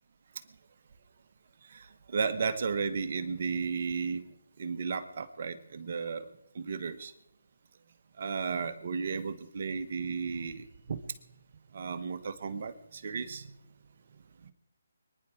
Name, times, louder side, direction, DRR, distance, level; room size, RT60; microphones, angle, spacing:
voice 1, 1.6-4.2 4.6-6.3 6.5-7.1 8.2-11.0 11.7-13.6 14.4-14.5, right 5 dB, 50° right, 10 dB, 1.4 m, -34 dB
24.5 x 10.5 x 4.7 m, 0.80 s
figure-of-eight pair, 150°, 0 cm